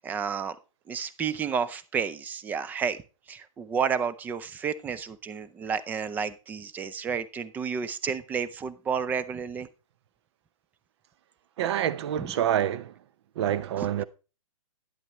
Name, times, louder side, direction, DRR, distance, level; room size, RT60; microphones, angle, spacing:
voice 1, 0.0-0.6 0.9-3.0 3.3-9.7 12.2-12.3 13.8-13.9, right 6 dB, 10° right, 0.4 m, -31 dB
voice 2, 11.6-12.9 13.4-14.0, right 10 dB, 50° right, 0.6 m, -27 dB
10.5 x 9.3 x 3.0 m
hypercardioid pair, 145°, 17 cm